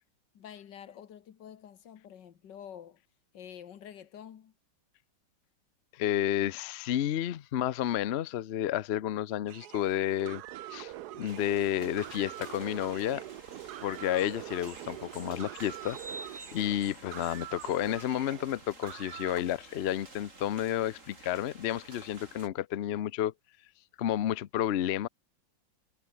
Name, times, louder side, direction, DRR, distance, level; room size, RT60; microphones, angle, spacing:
voice 1, 0.3-3.0 3.3-4.5, left 9 dB, 70° left, 1.9 m, -48 dB
voice 2, 5.9-10.4 10.7-13.2 13.8-16.0 16.5-23.3 24.0-25.1, left 11 dB, 90° left, 0.5 m, -31 dB
sound 1, 9.5-19.4, right 14 dB, 70° right, 1.1 m, -44 dB
sound 2, 11.3-22.5, right 2 dB, 40° right, 4.6 m, -50 dB
omnidirectional pair, 2.0 m